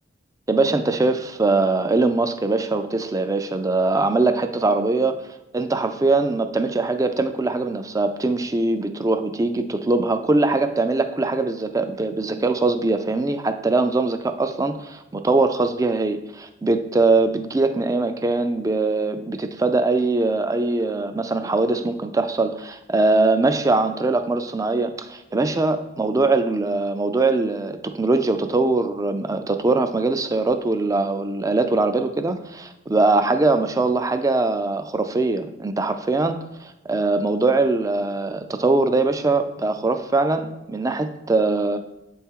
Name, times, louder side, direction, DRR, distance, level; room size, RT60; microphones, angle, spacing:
voice 1, 0.5-5.2 5.5-41.8, right 3 dB, 15° right, 9 dB, 0.4 m, -22 dB
8.0 x 4.4 x 3.6 m, 0.96 s
head